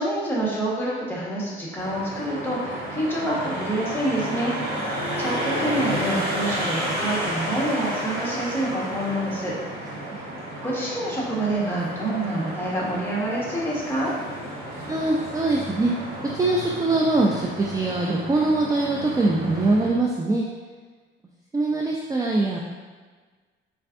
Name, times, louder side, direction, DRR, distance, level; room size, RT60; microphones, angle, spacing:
voice 1, 0.0-4.5 5.2-9.5 10.6-14.1, right 1 dB, 10° left, -5 dB, 1.3 m, -27 dB
sound 1, 1.8-19.9, right 1 dB, 80° right, 1.5 m, -31 dB
voice 2, 14.9-15.9 16.3-20.4 21.5-22.6, right 2 dB, 15° right, -2 dB, 0.4 m, -23 dB
4.3 x 3.4 x 2.5 m, 1.4 s
cardioid pair, 90°, 20 cm